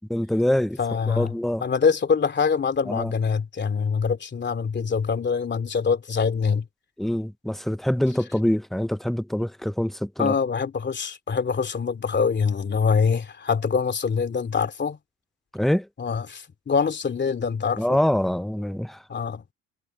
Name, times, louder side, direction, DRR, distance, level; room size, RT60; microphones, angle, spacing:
voice 1, 0.1-0.8 1.1-1.6 2.9-3.1 7.0-10.3 15.5-15.9 17.8-19.0, left 1 dB, ahead, 0.5 m, -24 dB
voice 2, 0.8-1.3 1.6-6.7 10.2-15.0 16.0-18.0 19.1-19.5, left 5 dB, 30° left, 2.7 m, -24 dB
supercardioid pair, 90°, 33 cm